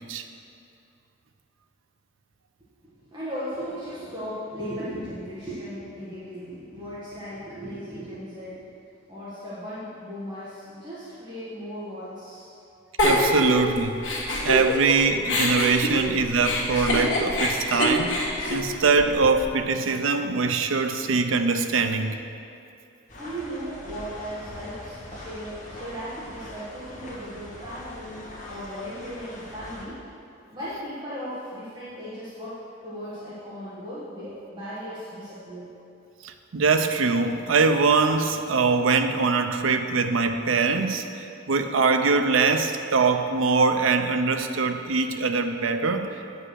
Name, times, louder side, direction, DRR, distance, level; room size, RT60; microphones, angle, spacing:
voice 1, 2.8-8.7 9.1-12.5 13.9-14.1 23.2-28.2 28.5-30.0 30.5-32.6 32.8-35.7, equal, 25° right, -11 dB, 1.5 m, -37 dB
Giggle, 13.0-14.9 15.3-19.5, left 1 dB, 80° left, 1.6 m, -25 dB
voice 2, 13.0-13.9 14.4-18.2 18.5-22.2 36.2-46.1, right 4 dB, 80° right, 7 dB, 0.6 m, -23 dB
sound 1, 23.1-29.8, left 1 dB, 40° left, 1.6 m, -42 dB
8.6 x 5.4 x 6.4 m, 2.6 s
head